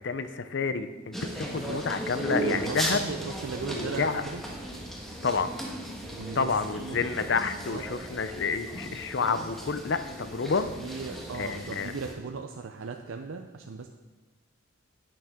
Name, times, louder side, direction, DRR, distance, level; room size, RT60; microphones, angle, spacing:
voice 1, 0.0-3.1 3.7-4.2 5.2-5.5 6.4-10.7 11.4-11.9, left 5 dB, 55° left, 11 dB, 0.6 m, -29 dB
sound 1, 1.1-12.1, right 1 dB, ahead, 1.3 m, -36 dB
voice 2, 2.3-4.4 6.1-7.2 7.7-7.8 10.8-13.9, right 4 dB, 70° right, 4 dB, 0.5 m, -37 dB
11.0 x 9.0 x 3.7 m, 1.2 s
head